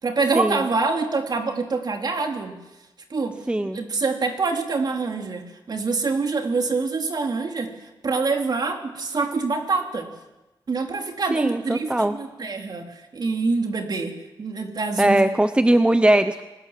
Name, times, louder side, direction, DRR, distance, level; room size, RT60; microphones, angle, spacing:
voice 1, 0.0-2.5 3.1-10.1 10.7-15.3, right 4 dB, 50° right, 3 dB, 3.3 m, -26 dB
voice 2, 3.5-3.8 11.3-12.1 15.0-16.4, right 1 dB, 10° right, 10 dB, 0.8 m, -19 dB
26.5 x 20.0 x 7.5 m, 1.0 s
wide cardioid pair, 120°, 9 cm